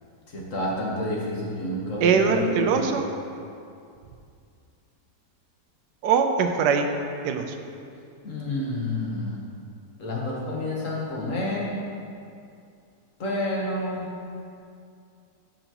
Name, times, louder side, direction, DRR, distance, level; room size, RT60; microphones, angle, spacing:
voice 1, 0.3-2.8 8.2-9.4 10.0-11.7 13.2-14.1, left 1 dB, 50° left, -3 dB, 1.5 m, -29 dB
voice 2, 2.0-3.0 6.0-7.0 7.2-7.6, right 6 dB, 85° right, 6 dB, 1.2 m, -22 dB
12.0 x 5.8 x 2.9 m, 2.4 s
omnidirectional pair, 1.8 m